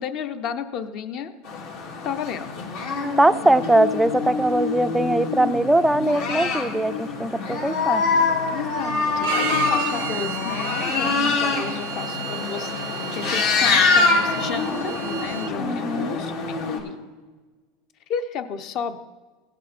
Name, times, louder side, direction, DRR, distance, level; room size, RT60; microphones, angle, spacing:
voice 1, 0.0-1.3 2.0-2.5 8.5-12.7 13.1-16.3 16.7-17.0 18.1-19.0, left 7 dB, 45° left, 10 dB, 0.8 m, -32 dB
sound 1, 1.4-16.8, left 4 dB, 65° left, 2.4 m, -25 dB
voice 2, 3.2-8.0 15.6-16.2, right 1 dB, 5° right, 12 dB, 0.3 m, -21 dB
Bowed string instrument, 9.2-15.5, right 13 dB, 70° right, 0.4 m, -33 dB
16.5 x 7.3 x 4.3 m, 1.3 s
supercardioid pair, 140°, 0 cm